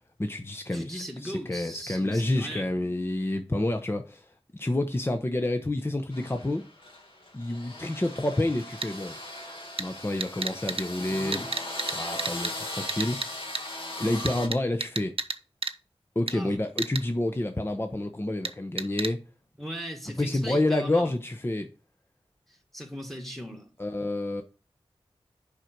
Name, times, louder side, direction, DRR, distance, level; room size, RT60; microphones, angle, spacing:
voice 1, 0.2-4.3 4.5-6.6 7.3-9.1 9.8-11.4 11.9-13.4 14.0-15.2 16.1-19.2 20.2-21.7 23.8-24.4, left 1 dB, 25° left, 0.8 m, -29 dB
voice 2, 0.7-3.0 11.0-11.6 16.3-16.5 19.6-21.1 22.5-23.7, equal, ahead, 1.9 m, -39 dB
sound 1, 6.1-14.5, left 1 dB, 60° left, 2.3 m, -38 dB
sound 2, 8.8-8.9 9.8-9.9 10.2-10.8 11.3-11.9 12.2-12.5 12.9-13.3 13.6-13.7 14.3-15.4 15.6-15.7 16.3-16.4 16.8-17.0 18.5-18.6 18.8-19.1, right 4 dB, 65° right, 0.7 m, -30 dB
7.4 x 5.2 x 4.6 m
wide cardioid pair, 55°, 10 cm